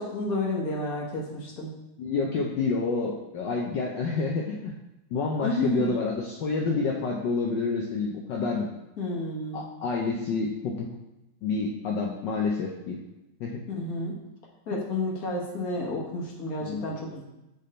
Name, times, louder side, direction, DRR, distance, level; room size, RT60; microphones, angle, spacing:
voice 1, 0.0-1.7 5.4-5.9 9.0-9.7 13.8-14.1 14.7-17.2, left 2 dB, 45° left, -2 dB, 1.5 m, -30 dB
voice 2, 2.0-4.7 5.1-8.7 9.5-10.9 11.4-13.0 13.4-13.6 16.6-16.8, left 4 dB, 70° left, -1 dB, 1.2 m, -28 dB
7.6 x 3.6 x 4.2 m, 0.95 s
omnidirectional pair, 2.3 m